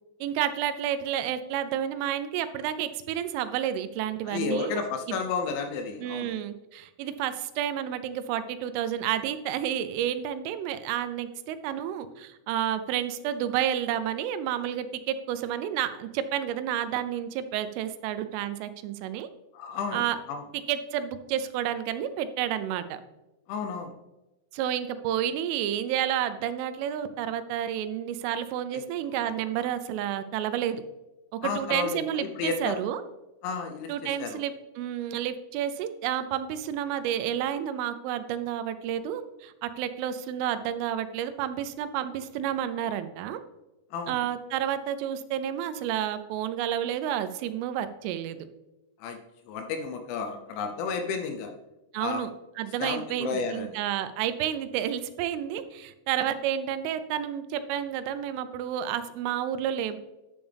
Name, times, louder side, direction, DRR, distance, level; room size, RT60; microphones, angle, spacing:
voice 1, 0.2-4.8 5.1-5.2 6.0-19.3 19.9-20.2 20.7-23.0 24.5-30.8 31.3-33.0 33.9-43.4 44.1-48.5 51.9-52.3 52.6-60.0, right 10 dB, 85° right, 11 dB, 3.2 m, -30 dB
voice 2, 4.2-6.3 19.5-20.4 23.5-23.9 28.7-28.8 31.4-32.8 33.4-34.4 43.9-44.2 49.0-49.2 49.5-51.5 52.0-52.2 52.8-53.8, left 5 dB, 80° left, 5 dB, 3.0 m, -32 dB
10.5 x 7.1 x 3.4 m, 1.0 s
omnidirectional pair, 5.6 m